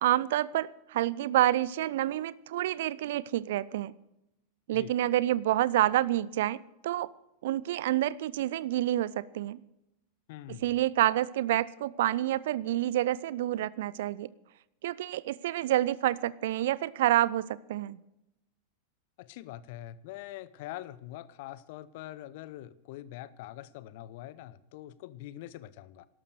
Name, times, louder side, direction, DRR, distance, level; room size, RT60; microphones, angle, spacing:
voice 1, 0.0-3.9 4.7-7.1 7.4-9.6 10.5-14.3 14.8-18.0, right 14 dB, 55° right, 21 dB, 0.5 m, -28 dB
voice 2, 10.3-10.6 19.2-26.1, left 14 dB, 50° left, 18 dB, 0.7 m, -44 dB
12.5 x 12.0 x 6.4 m, 0.87 s
figure-of-eight pair, 90°, 0 cm